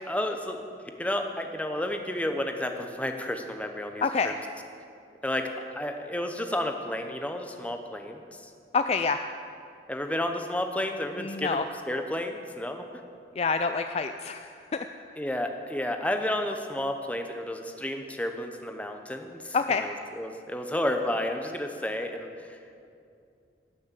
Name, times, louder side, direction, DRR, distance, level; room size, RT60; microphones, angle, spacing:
voice 1, 0.1-0.6 1.0-4.3 5.2-8.5 9.9-12.9 15.2-22.6, left 1 dB, 5° left, 5 dB, 0.8 m, -31 dB
voice 2, 4.0-4.4 8.7-9.2 11.2-11.7 13.4-14.9 19.5-19.8, left 5 dB, 35° left, 8 dB, 0.3 m, -27 dB
18.5 x 6.3 x 7.5 m, 2.4 s
head